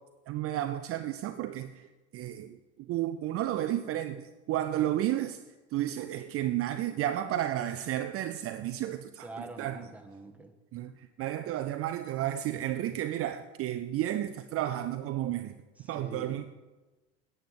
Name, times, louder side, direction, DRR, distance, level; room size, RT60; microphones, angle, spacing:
voice 1, 0.3-5.4 5.7-9.9 10.7-15.6 15.9-16.4, right 12 dB, 40° right, 10 dB, 0.5 m, -32 dB
voice 2, 9.2-10.5 15.8-16.5, right 2 dB, 5° right, 5 dB, 1.4 m, -45 dB
10.5 x 8.0 x 5.8 m, 1.2 s
hypercardioid pair, 80°, 35 cm